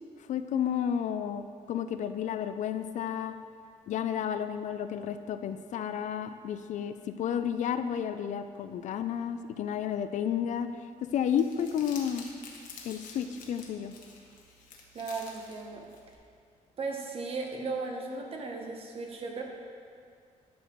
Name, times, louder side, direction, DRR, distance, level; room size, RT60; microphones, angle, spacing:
voice 1, 0.3-3.4 3.9-10.7 11.0-12.3 12.8-13.9, left 8 dB, 65° left, 10 dB, 0.4 m, -31 dB
Crumpling crinkling, 11.1-16.2, left 4 dB, 80° left, 1.1 m, -49 dB
voice 2, 14.9-15.9 16.8-19.4, right 3 dB, 45° right, 1 dB, 1.0 m, -36 dB
11.0 x 6.5 x 3.1 m, 2.2 s
cardioid pair, 150°, 14 cm